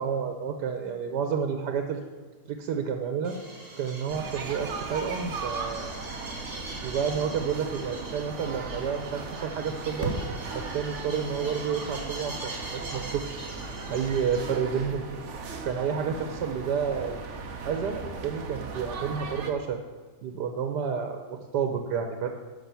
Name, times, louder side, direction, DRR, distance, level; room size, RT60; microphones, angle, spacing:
voice 1, 0.0-2.0 2.5-3.4 3.8-5.9 6.8-10.1 10.5-13.5 13.9-15.0 15.6-17.2 17.6-19.8 20.2-22.3, right 6 dB, 90° right, 5 dB, 1.4 m, -30 dB
sound 1, 3.2-14.6, right 2 dB, 25° right, 1.9 m, -41 dB
sound 2, 4.1-19.5, right 4 dB, 50° right, 1.2 m, -38 dB
11.5 x 5.9 x 6.9 m, 1.4 s
omnidirectional pair, 1.7 m